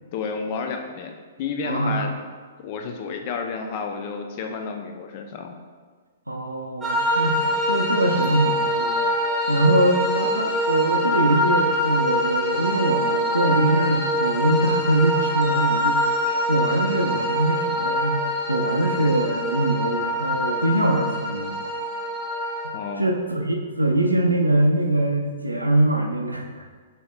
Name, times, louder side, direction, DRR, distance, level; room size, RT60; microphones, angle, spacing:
voice 1, 0.1-2.1 2.6-5.5 22.7-23.1, left 5 dB, 40° left, 4 dB, 0.4 m, -31 dB
voice 2, 1.6-2.1 6.3-9.0 9.5-16.0 16.5-21.5 22.6-26.6, right 1 dB, 85° right, 2 dB, 0.5 m, -23 dB
sound 1, 6.8-22.7, equal, 10° right, 0.6 m, -24 dB
6.2 x 2.8 x 2.2 m, 1.5 s
figure-of-eight pair, 115°, 0 cm